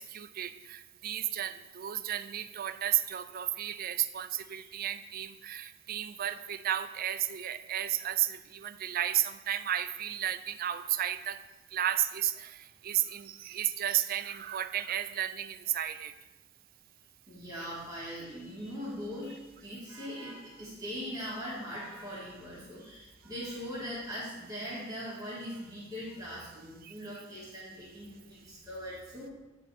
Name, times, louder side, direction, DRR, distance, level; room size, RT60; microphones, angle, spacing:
voice 1, 0.0-11.4 11.7-16.1 17.6-17.7 26.8-26.9, right 11 dB, 45° right, 11 dB, 0.4 m, -33 dB
voice 2, 17.3-29.3, equal, 20° right, -8 dB, 2.3 m, -41 dB
8.7 x 4.3 x 4.9 m, 1.1 s
head